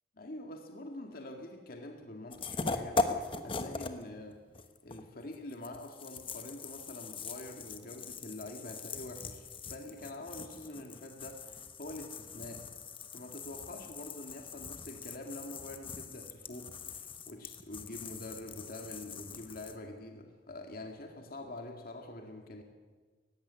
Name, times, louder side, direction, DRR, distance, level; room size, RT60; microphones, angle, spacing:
voice 1, 0.2-4.4 4.8-12.7 13.1-22.6, left 1 dB, 55° left, 3 dB, 2.0 m, -46 dB
sound 1, 2.3-4.0 4.3-19.8, left 3 dB, 30° left, 1.3 m, -40 dB
17.5 x 15.5 x 9.8 m, 1.4 s
head